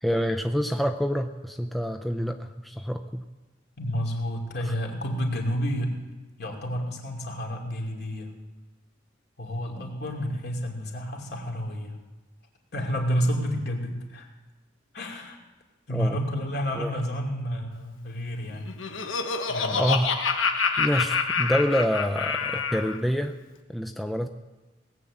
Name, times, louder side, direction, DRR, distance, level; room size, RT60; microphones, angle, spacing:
voice 1, 0.0-3.2 15.9-16.2 16.7-16.9 19.7-20.2 20.8-23.4 23.7-24.3, equal, ahead, 5 dB, 0.5 m, -27 dB
voice 2, 3.8-6.0 6.4-8.3 9.4-12.0 12.7-14.3 14.9-15.4 15.9-19.2 19.5-19.8, equal, 60° left, 1 dB, 2.6 m, -30 dB
Laughter, 18.5-23.0, left 5 dB, 90° left, 1.2 m, -27 dB
18.5 x 8.3 x 7.5 m, 1.2 s
head